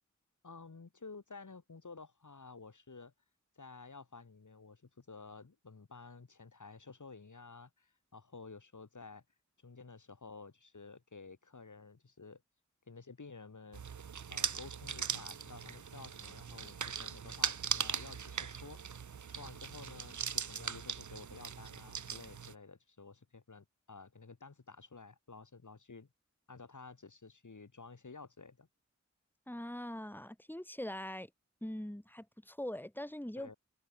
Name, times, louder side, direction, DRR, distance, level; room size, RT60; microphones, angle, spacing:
voice 1, 0.4-3.1 3.6-9.2 9.6-12.4 12.9-13.8 14.3-18.8 19.3-26.1 26.5-28.7 33.4-33.6, left 4 dB, 85° left, 3.8 m, -52 dB
sound 1, 13.7-22.5, right 7 dB, 75° right, 0.7 m, -40 dB
voice 2, 29.5-31.3 31.6-33.5, left 1 dB, 5° left, 2.9 m, -42 dB
open air
wide cardioid pair, 60°, 30 cm